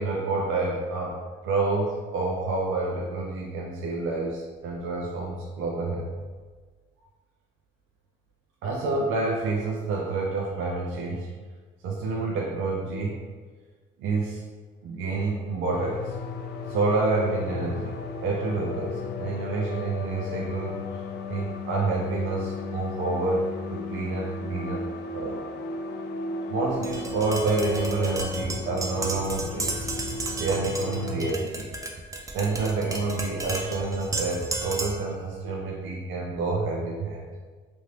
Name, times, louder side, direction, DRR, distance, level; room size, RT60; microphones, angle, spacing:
voice 1, 0.0-6.1 8.6-11.3 11.8-13.2 14.0-14.4 14.8-16.1 16.7-17.9 18.2-20.8 21.3-24.9 25.1-25.4 26.5-29.9 30.4-31.7 32.3-37.2, right 3 dB, 80° right, -2 dB, 0.5 m, -28 dB
sound 1, 15.7-31.3, left 3 dB, 60° left, 0.4 m, -35 dB
Tap, 26.8-35.1, right 2 dB, 15° right, 0.4 m, -33 dB
2.8 x 2.6 x 3.2 m, 1.4 s
cardioid pair, 90°, 20 cm